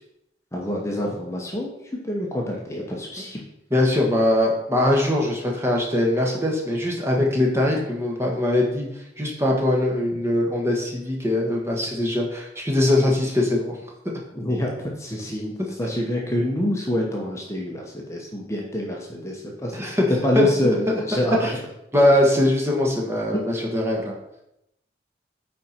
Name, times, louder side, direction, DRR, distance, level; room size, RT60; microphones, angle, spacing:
voice 1, 0.5-3.4 14.3-15.5 15.8-21.5, left 1 dB, 15° left, -1 dB, 1.0 m, -26 dB
voice 2, 3.7-8.9 9.2-13.8 19.7-20.1 20.3-20.5 21.4-21.5 21.9-24.2, left 1 dB, 15° right, -1 dB, 1.4 m, -21 dB
9.2 x 4.3 x 4.4 m, 0.83 s
head